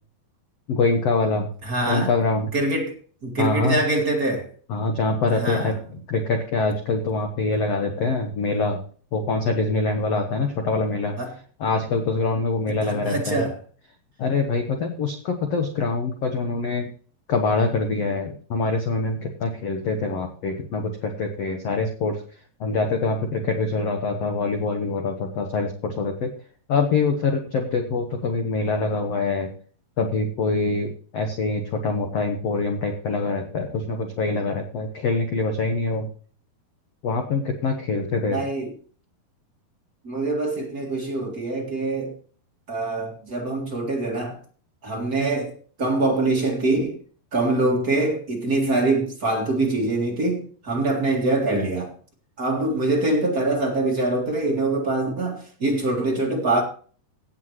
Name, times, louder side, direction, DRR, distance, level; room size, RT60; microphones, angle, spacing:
voice 1, 0.7-1.5 1.9-2.5 3.4-3.8 4.7-5.7 6.1-8.8 9.1-11.2 11.6-13.4 14.2-16.9 17.3-22.2 22.6-26.3 26.7-29.5 30.0-36.1 37.0-38.5, left 3 dB, 75° left, 1.5 m, -24 dB
voice 2, 1.6-2.2 2.5-2.9 3.2-4.5 5.3-5.8 11.2-11.3 12.8-13.6 38.3-38.7 40.0-42.1 42.7-44.4 44.8-47.0 47.3-51.9 52.4-56.6, right 2 dB, 35° right, 1.5 m, -24 dB
17.0 x 8.2 x 3.1 m
omnidirectional pair, 4.6 m